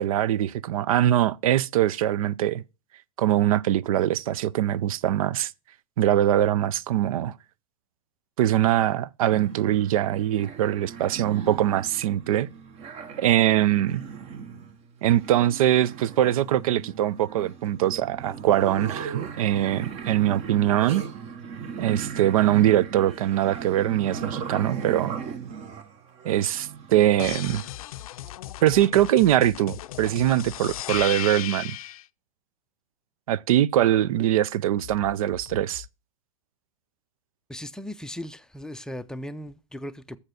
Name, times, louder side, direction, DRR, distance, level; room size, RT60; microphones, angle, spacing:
voice 1, 0.0-2.6 3.2-5.5 6.0-7.3 8.4-12.5 13.2-14.0 15.0-21.0 21.8-25.2 26.2-27.6 28.6-31.8 33.3-35.8, right 12 dB, 75° right, 0.5 m, -22 dB
sound 1, 9.3-27.1, right 6 dB, 35° right, 1.1 m, -37 dB
sound 2, 27.2-32.0 34.8-35.9, left 13 dB, 80° left, 0.5 m, -36 dB
voice 2, 37.5-40.2, equal, 5° left, 0.4 m, -37 dB
7.1 x 6.5 x 6.3 m
hypercardioid pair, 120°, 18 cm